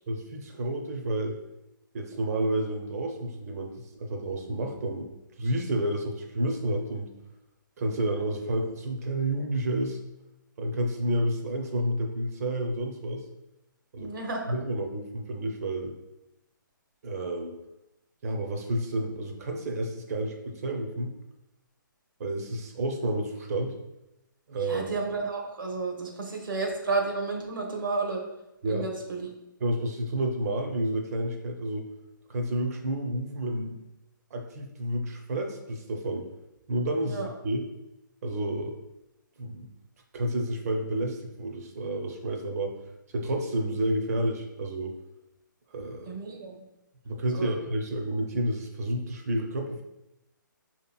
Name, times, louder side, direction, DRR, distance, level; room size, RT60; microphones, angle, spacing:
voice 1, 0.1-1.4 1.9-3.7 4.0-5.1 5.4-7.1 7.8-10.0 10.6-13.2 13.9-14.1 14.5-15.9 17.0-17.6 18.2-21.1 22.2-23.8 24.5-25.0 28.6-28.9 29.6-31.9 32.3-33.8 34.3-36.3 36.7-37.6 38.2-38.8 39.4-39.7 40.1-42.7 43.1-45.0 45.7-46.1 47.0-49.8, right 1 dB, 45° right, 3 dB, 0.6 m, -30 dB
voice 2, 14.0-14.6 24.6-28.2 28.6-29.3 37.0-37.3 46.1-46.6 47.3-47.6, right 3 dB, 75° right, 1 dB, 0.9 m, -32 dB
4.8 x 2.9 x 2.3 m, 0.91 s
figure-of-eight pair, 140°, 11 cm